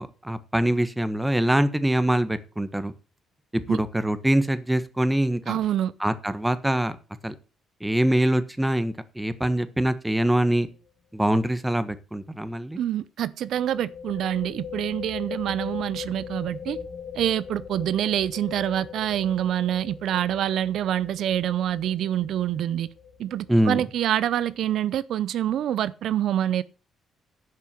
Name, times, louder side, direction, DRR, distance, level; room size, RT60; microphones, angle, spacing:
voice 1, 0.0-2.9 3.5-5.6 6.0-7.0 7.2-7.3 7.8-10.7 11.1-12.8 23.5-23.8, right 1 dB, 10° right, 1.3 m, -24 dB
voice 2, 5.5-5.9 12.8-16.8 17.1-22.9 23.2-26.6, right 11 dB, 75° right, 0.5 m, -26 dB
sound 1, 10.3-10.6 10.9-11.0 13.4-24.8, left 7 dB, 50° left, 1.9 m, -40 dB
11.0 x 5.6 x 7.5 m
cardioid pair, 90°, 0 cm